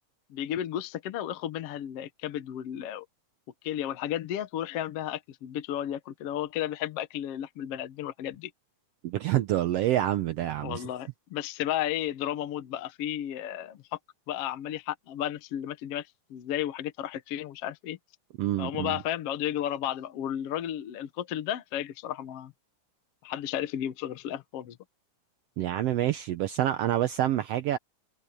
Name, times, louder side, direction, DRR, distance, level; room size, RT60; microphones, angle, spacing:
voice 1, 0.3-3.1 3.6-8.5 10.6-14.0 14.3-18.0 18.6-22.5 23.2-24.8, left 11 dB, 60° left, 1.7 m, -33 dB
voice 2, 9.0-10.8 18.4-19.0 25.6-27.8, right 13 dB, 85° right, 1.4 m, -27 dB
omnidirectional pair, 3.6 m